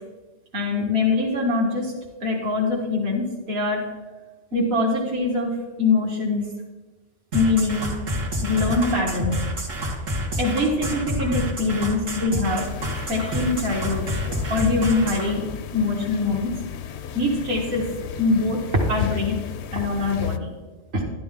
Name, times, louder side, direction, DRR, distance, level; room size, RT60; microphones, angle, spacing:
voice 1, 0.5-1.9 2.2-3.8 4.5-6.5 7.3-8.0 8.4-9.4 10.4-12.7 13.1-14.1 14.5-15.5 15.7-16.6 17.1-17.9 18.2-18.6 18.9-19.4 19.7-20.5 20.9-21.0, left 3 dB, 55° right, -4 dB, 2.0 m, -23 dB
sound 1, 7.3-15.3, equal, 90° right, 2.3 m, -28 dB
sound 2, 12.6-20.4, left 10 dB, 70° left, 0.8 m, -34 dB
12.5 x 11.5 x 3.7 m, 1.3 s
omnidirectional pair, 1.3 m